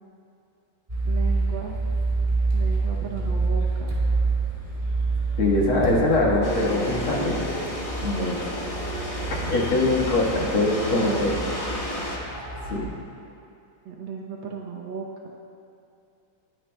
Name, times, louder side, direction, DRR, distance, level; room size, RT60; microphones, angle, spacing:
sound 1, 0.9-12.8, right 3 dB, 15° right, 2.0 m, -28 dB
voice 1, 1.0-1.8 2.5-3.9 10.9-11.7 13.8-15.3, right 5 dB, 70° right, -1 dB, 1.5 m, -36 dB
voice 2, 5.4-7.4 8.0-8.5 9.3-11.3 12.7-12.9, left 2 dB, 75° left, -4 dB, 2.4 m, -23 dB
sound 2, 6.4-12.2, left 1 dB, 20° left, 0.9 m, -32 dB
21.0 x 10.0 x 2.2 m, 2.6 s
omnidirectional pair, 2.3 m